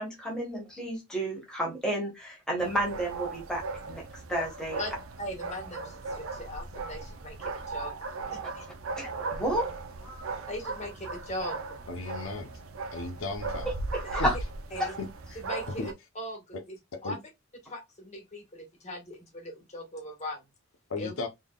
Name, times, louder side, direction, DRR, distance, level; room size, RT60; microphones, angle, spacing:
voice 1, 0.0-3.6 3.9-4.0 4.3-4.8 9.0-9.7 10.0-10.5 13.6-14.4 14.8-14.9, right 1 dB, 5° left, 1.4 m, -31 dB
sound 1, 2.6-15.9, right 3 dB, 85° right, 0.6 m, -37 dB
voice 2, 5.2-7.9 8.3-8.7 10.5-11.6 14.1-14.2 14.7-14.9 15.4-16.8 17.0-17.2 17.7-20.4 21.0-21.1, left 1 dB, 35° left, 1.6 m, -39 dB
voice 3, 11.9-12.5 12.9-13.7 14.2-14.3 15.0-15.1 15.8-15.9 17.0-17.2 20.9-21.3, left 3 dB, 75° left, 0.8 m, -34 dB
3.7 x 3.4 x 2.3 m
head